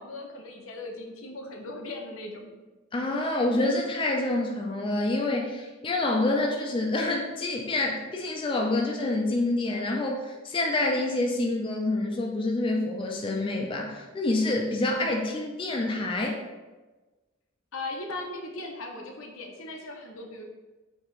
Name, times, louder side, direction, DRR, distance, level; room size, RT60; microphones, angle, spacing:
voice 1, 0.0-2.5 17.7-20.4, left 2 dB, 80° left, 2 dB, 0.7 m, -38 dB
voice 2, 2.9-16.4, left 2 dB, 25° left, 0 dB, 0.3 m, -27 dB
4.4 x 2.9 x 3.1 m, 1.2 s
head